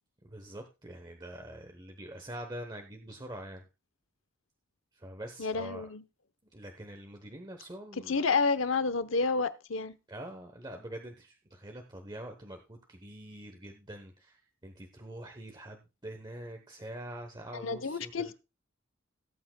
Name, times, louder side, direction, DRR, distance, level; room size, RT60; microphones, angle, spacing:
voice 1, 0.2-3.7 4.9-5.9 6.5-8.2 10.1-18.3, right 1 dB, 20° right, 1.0 m, -45 dB
voice 2, 5.4-6.0 8.1-10.0 17.5-18.3, left 4 dB, 70° left, 0.9 m, -30 dB
17.5 x 8.6 x 2.3 m
head